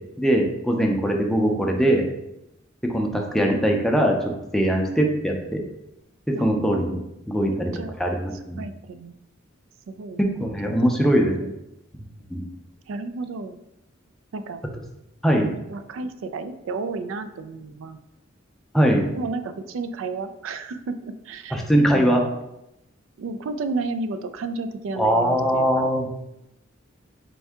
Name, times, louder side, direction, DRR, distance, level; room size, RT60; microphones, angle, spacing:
voice 1, 0.2-2.0 2.9-4.2 4.5-5.6 6.3-7.0 7.3-7.7 8.0-8.6 10.2-11.5 12.3-12.4 15.2-15.5 18.7-19.0 21.5-22.2 25.0-26.1, equal, ahead, 1 dB, 0.5 m, -21 dB
voice 2, 7.5-7.9 8.6-9.1 9.9-10.2 10.7-10.9 11.4-11.5 12.9-13.6 14.3-14.6 15.7-18.0 19.1-21.6 21.9-22.3 23.2-25.9, right 3 dB, 70° right, 10 dB, 0.3 m, -32 dB
4.4 x 2.6 x 3.5 m, 0.86 s
head